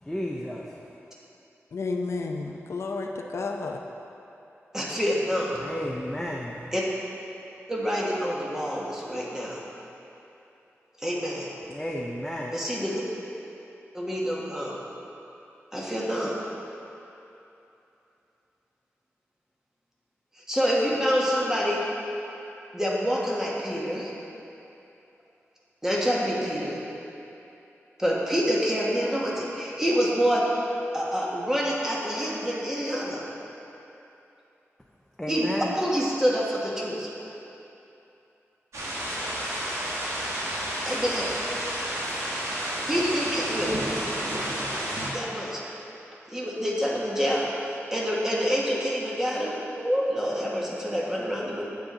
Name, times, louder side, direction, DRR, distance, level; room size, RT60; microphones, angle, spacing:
voice 1, 0.1-0.6 5.6-6.6 11.7-12.5 35.2-35.7, equal, 10° left, -2 dB, 0.5 m, -32 dB
voice 2, 1.7-3.8, left 3 dB, 65° left, 2 dB, 0.6 m, -31 dB
voice 3, 4.7-5.6 6.7-6.8 7.7-9.6 11.0-11.5 12.5-12.9 13.9-14.8 15.7-16.3 20.5-21.8 22.7-24.1 25.8-26.8 28.0-30.6 30.9-33.2 35.3-35.5 35.7-37.1 40.8-41.3 42.9-43.7 45.1-45.6 46.3-51.6, equal, 10° right, -5 dB, 1.4 m, -27 dB
sound 1, 38.7-45.1, right 1 dB, 85° right, 1.6 m, -31 dB
8.7 x 8.4 x 3.8 m, 2.9 s
wide cardioid pair, 130°, 5 cm